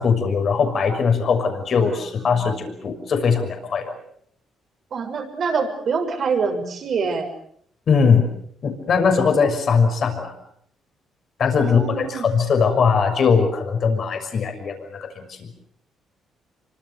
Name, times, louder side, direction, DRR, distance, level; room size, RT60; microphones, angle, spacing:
voice 1, 0.0-3.9 7.9-8.3 8.6-10.3 11.4-15.4, left 5 dB, 55° left, 6 dB, 6.3 m, -20 dB
voice 2, 1.8-2.3 4.9-7.3 11.6-12.3, right 5 dB, 55° right, 5 dB, 6.8 m, -25 dB
26.0 x 25.0 x 7.0 m, 0.67 s
cardioid pair, 90°, 0 cm